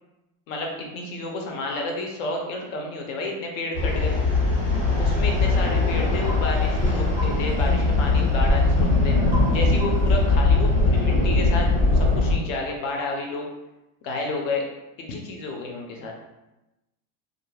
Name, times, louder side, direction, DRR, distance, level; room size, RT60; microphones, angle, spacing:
voice 1, 0.5-4.2 5.0-9.1 9.5-13.5 14.0-14.6 15.1-16.1, left 2 dB, 60° left, 1 dB, 0.7 m, -30 dB
sound 1, 3.7-12.3, left 3 dB, 15° left, 0.8 m, -20 dB
sound 2, 6.3-6.5 7.2-7.4 9.3-9.5 9.8-10.1, equal, 20° right, 0.5 m, -35 dB
2.4 x 2.0 x 3.1 m, 0.98 s
supercardioid pair, 155°, 45 cm